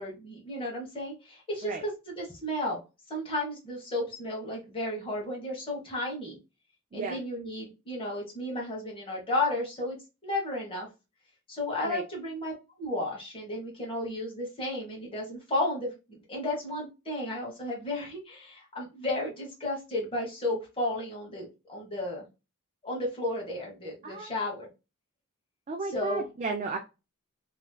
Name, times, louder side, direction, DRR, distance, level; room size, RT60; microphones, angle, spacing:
voice 1, 0.0-2.8 3.1-6.4 6.9-10.0 10.2-10.9 11.5-12.5 12.8-22.3 22.8-24.7 25.9-26.2, left 1 dB, 25° left, -3 dB, 1.3 m, -33 dB
voice 2, 25.7-26.8, right 4 dB, 35° right, 3 dB, 0.4 m, -33 dB
3.0 x 2.8 x 2.2 m, 0.27 s
head